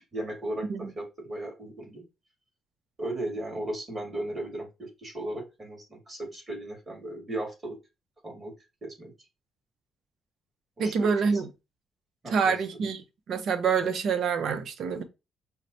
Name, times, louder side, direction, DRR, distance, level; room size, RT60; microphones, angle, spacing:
voice 1, 0.1-0.7 1.0-2.0 3.0-4.7 5.0-7.7 8.2-8.5 8.8-9.1 10.8-11.1 12.2-12.6, right 1 dB, 30° right, 1.9 m, -36 dB
voice 2, 10.8-11.5 12.3-13.0 13.3-15.0, right 5 dB, 70° right, 0.6 m, -26 dB
5.6 x 2.1 x 2.6 m
cardioid pair, 90°, 0 cm